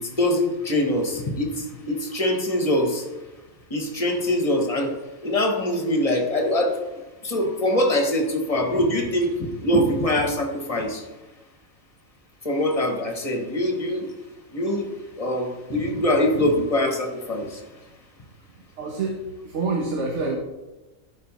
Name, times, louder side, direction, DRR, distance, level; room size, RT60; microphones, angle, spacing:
voice 1, 0.0-3.0 3.7-4.9 5.2-6.7 7.2-11.0 12.4-14.1 14.5-14.9 15.2-17.6, left 1 dB, 30° left, 2 dB, 1.1 m, -23 dB
voice 2, 18.8-20.4, right 3 dB, 75° right, 0 dB, 1.2 m, -27 dB
12.5 x 4.9 x 3.1 m, 1.1 s
omnidirectional pair, 1.2 m